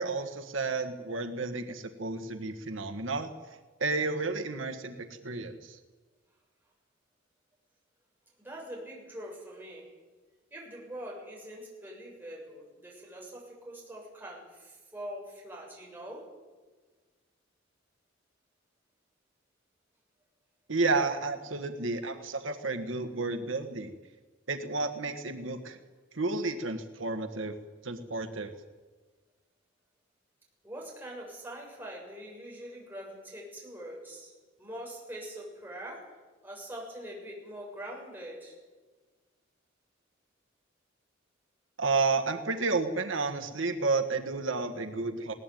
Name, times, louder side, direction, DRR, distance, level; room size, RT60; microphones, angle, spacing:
voice 1, 0.0-3.3 3.8-5.8 20.7-23.9 24.5-25.8 26.1-27.5 27.8-28.5 41.8-45.3, right 3 dB, 80° right, 7 dB, 1.5 m, -31 dB
voice 2, 8.4-9.9 10.5-16.3 30.6-34.3 34.6-36.1 36.4-38.5, right 1 dB, 10° right, -2 dB, 7.2 m, -43 dB
20.5 x 18.0 x 9.2 m, 1.3 s
head